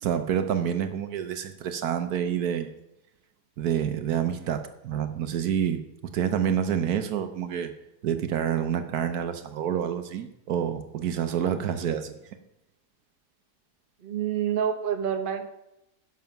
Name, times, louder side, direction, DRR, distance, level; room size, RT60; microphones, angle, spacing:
voice 1, 0.0-2.7 3.6-7.7 8.0-12.2, right 9 dB, 70° right, 9 dB, 1.2 m, -28 dB
voice 2, 14.0-15.4, right 8 dB, 40° right, 6 dB, 0.9 m, -27 dB
10.5 x 6.3 x 5.8 m, 0.88 s
omnidirectional pair, 1.7 m